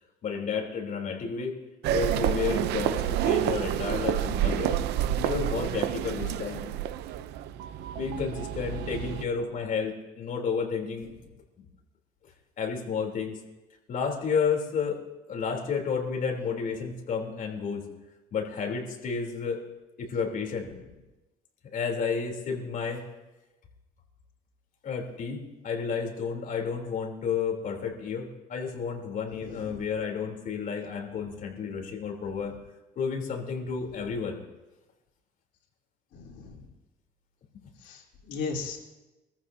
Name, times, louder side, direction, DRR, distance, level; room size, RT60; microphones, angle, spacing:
voice 1, 0.2-1.5 1.9-4.8 5.2-6.7 7.9-11.1 11.6-11.7 12.6-13.4 13.9-15.0 15.3-17.8 18.3-19.6 20.0-20.7 21.7-23.0 24.8-32.6 33.0-34.4, left 6 dB, 55° left, 0 dB, 3.5 m, -31 dB
sound 1, 1.8-9.2, right 11 dB, 85° right, 0.7 m, -29 dB
voice 2, 29.4-29.8 36.1-36.5 37.8-38.8, left 4 dB, 80° left, -3 dB, 3.9 m, -37 dB
25.5 x 14.5 x 2.8 m, 1.1 s
cardioid pair, 110°, 17 cm